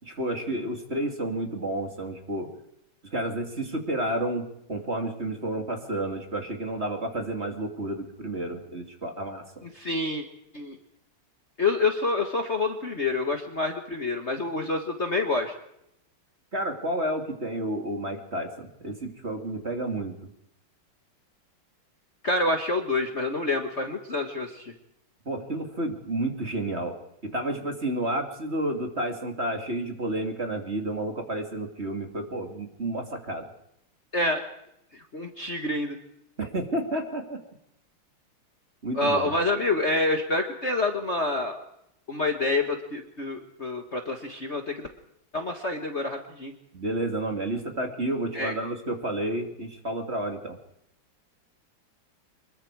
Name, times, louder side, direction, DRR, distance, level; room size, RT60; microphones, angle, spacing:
voice 1, 0.0-2.5 3.1-9.6 16.5-20.2 25.3-27.0 27.2-33.4 36.4-37.4 38.8-39.3 46.7-50.6, right 1 dB, 30° right, 4 dB, 2.8 m, -31 dB
voice 2, 9.7-10.2 10.5-10.8 11.6-15.5 22.2-24.6 34.1-34.4 35.1-36.0 38.9-41.6 42.1-44.9 45.3-46.5 48.3-48.5, left 2 dB, 35° left, 4 dB, 1.7 m, -27 dB
25.5 x 22.0 x 4.8 m, 0.78 s
omnidirectional pair, 2.4 m